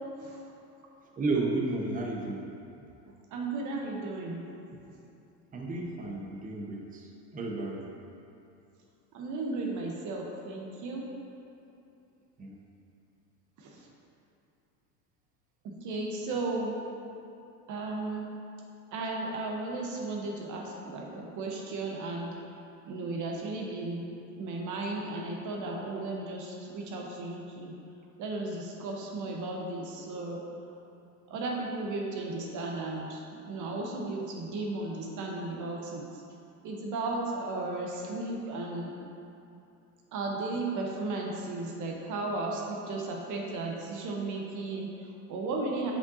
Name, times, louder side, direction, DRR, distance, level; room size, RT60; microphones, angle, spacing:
voice 1, 1.2-2.4 5.5-7.9 12.4-12.6, right 2 dB, 15° right, -1 dB, 0.8 m, -32 dB
voice 2, 3.3-4.4 4.9-5.0 9.1-11.0 13.6-13.9 15.6-16.8 17.7-18.3 18.9-22.3 22.9-24.0 24.4-27.8 28.2-30.4 31.3-36.2 36.6-39.0 40.1-45.9, right 2 dB, 40° right, -1 dB, 1.0 m, -35 dB
7.6 x 5.7 x 2.7 m, 2.7 s
hypercardioid pair, 90°, 48 cm